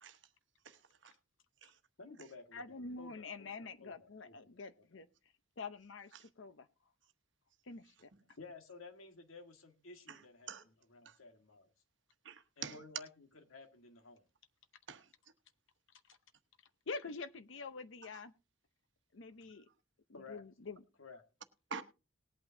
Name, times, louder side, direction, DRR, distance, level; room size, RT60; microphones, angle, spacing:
voice 1, 0.6-1.1 1.6-1.7 6.1-6.2 10.1-10.2 10.5-10.6 11.0-11.1 12.2-12.8 14.9-15.0 21.7-21.8, right 6 dB, 60° right, 1.0 m, -46 dB
voice 2, 2.0-5.0 8.4-11.7 12.6-14.3 19.4-19.5 20.1-20.4 21.0-21.2, left 3 dB, 90° left, 1.8 m, -55 dB
voice 3, 2.5-5.1 5.6-6.7 7.7-8.1 16.9-18.3 19.1-19.7 20.1-20.8, left 4 dB, 65° left, 0.7 m, -46 dB
19.5 x 8.6 x 2.7 m
head